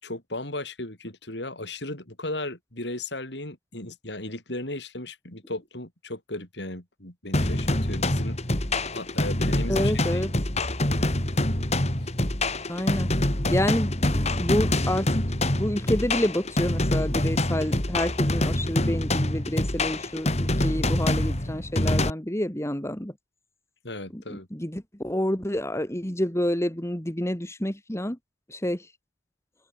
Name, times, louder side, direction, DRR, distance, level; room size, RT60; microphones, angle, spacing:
voice 1, 0.0-8.4 8.9-10.3 23.8-24.5, left 2 dB, 75° left, 7.2 m, -36 dB
sound 1, 7.3-22.1, left 1 dB, 40° left, 3.3 m, -25 dB
voice 2, 9.7-10.3 12.7-13.1 13.5-15.2 15.6-23.1 24.1-28.2 28.5-28.9, left 1 dB, 15° left, 2.3 m, -28 dB
open air
head